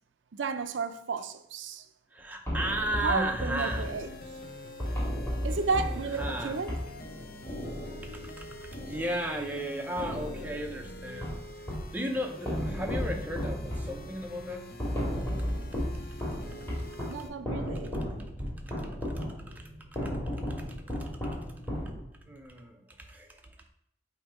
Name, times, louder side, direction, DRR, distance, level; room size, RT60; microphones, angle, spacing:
voice 1, 0.3-1.8 3.0-4.1 5.4-6.8 16.8-17.9, right 4 dB, 90° right, 0.5 m, -33 dB
voice 2, 2.1-4.0 4.9-5.0 6.1-6.6 8.1-11.4 11.9-14.7 18.7-18.8 19.1-19.6 20.0-20.1 20.5-21.1 22.3-23.5, right 1 dB, 10° right, 0.6 m, -35 dB
sound 1, 2.5-9.6 10.0-12.0 12.4-22.4, equal, 10° left, 1.9 m, -35 dB
sound 2, 3.6-17.3, left 2 dB, 50° left, 0.6 m, -46 dB
8.0 x 2.8 x 4.8 m
head